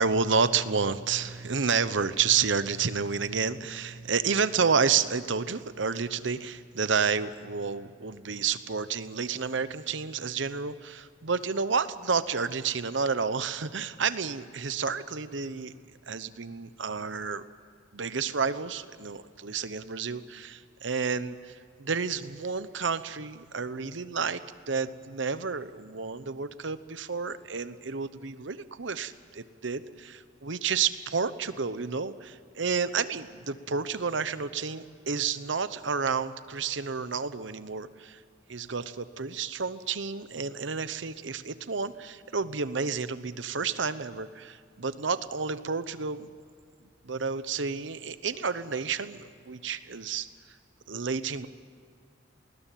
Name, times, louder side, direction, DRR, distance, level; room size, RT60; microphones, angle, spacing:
voice 1, 0.0-15.7 16.1-17.4 17.9-24.4 24.7-38.2 38.5-46.3 47.0-50.3 50.9-51.5, right 5 dB, 70° right, 13 dB, 0.9 m, -30 dB
20.0 x 20.0 x 9.2 m, 2.1 s
head